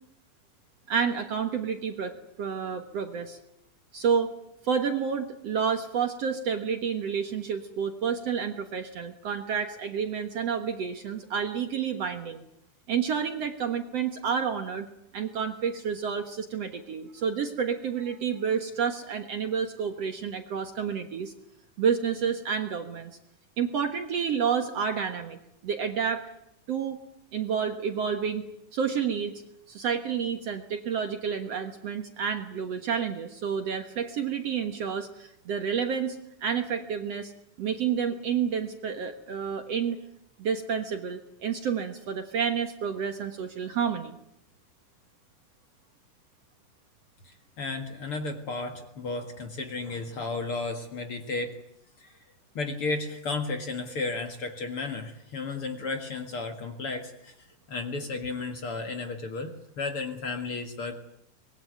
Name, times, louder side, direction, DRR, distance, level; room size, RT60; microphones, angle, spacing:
voice 1, 0.9-2.1 2.4-3.4 3.9-4.3 4.6-12.4 12.9-14.9 15.1-21.3 21.8-23.1 23.6-26.3 26.7-27.0 27.3-28.4 28.7-29.3 29.7-37.3 37.6-40.0 40.4-44.2, right 7 dB, 55° right, 7 dB, 2.0 m, -29 dB
voice 2, 47.2-51.6 52.0-52.1 52.5-61.0, left 3 dB, 45° left, 6 dB, 2.2 m, -33 dB
24.5 x 21.0 x 9.3 m, 0.78 s
omnidirectional pair, 4.0 m